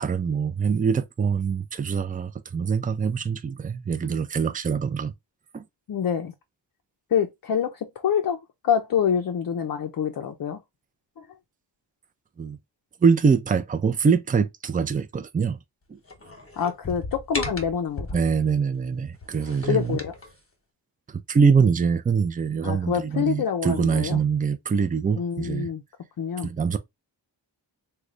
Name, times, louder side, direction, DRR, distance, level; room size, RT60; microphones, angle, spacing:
voice 1, 0.0-5.1 5.5-5.6 12.4-12.6 13.0-15.6 15.9-16.0 18.1-20.0 21.1-25.7 26.4-26.8, right 6 dB, 20° right, 0.3 m, -24 dB
voice 2, 5.9-6.3 7.1-8.4 8.6-10.6 11.2-11.3 16.6-18.1 19.7-20.1 22.6-24.2 25.2-25.8 26.2-26.5, left 8 dB, 55° left, 0.5 m, -26 dB
sound 1, 16.1-18.5 19.1-20.3, left 2 dB, 30° left, 1.0 m, -35 dB
3.1 x 2.2 x 3.7 m
wide cardioid pair, 115°, 43 cm